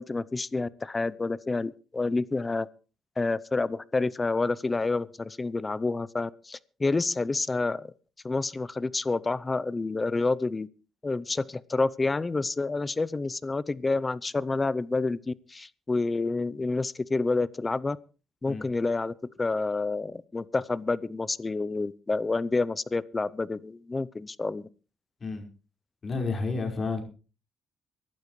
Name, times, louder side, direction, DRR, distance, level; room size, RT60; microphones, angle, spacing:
voice 1, 0.0-2.7 3.2-7.9 8.2-10.7 11.0-18.0 18.4-24.7, left 3 dB, 25° left, 20 dB, 0.6 m, -29 dB
voice 2, 26.0-27.0, left 4 dB, 40° left, 3 dB, 5.0 m, -30 dB
24.0 x 12.0 x 3.2 m, 0.35 s
cardioid pair, 90°, 0 cm